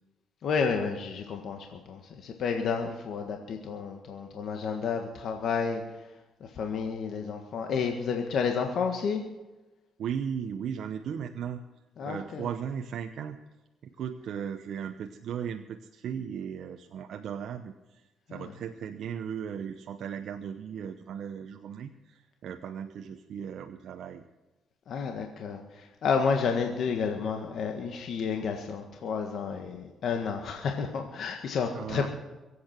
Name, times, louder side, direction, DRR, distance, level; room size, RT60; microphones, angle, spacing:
voice 1, 0.4-5.8 6.4-9.2 12.0-12.5 18.3-18.4 24.9-32.1, left 5 dB, 65° left, 3 dB, 1.6 m, -31 dB
voice 2, 10.0-11.6 12.0-13.4 13.8-24.2 31.7-32.1, right 8 dB, 70° right, 5 dB, 0.8 m, -37 dB
23.5 x 8.5 x 6.0 m, 1.1 s
cardioid pair, 90°, 0 cm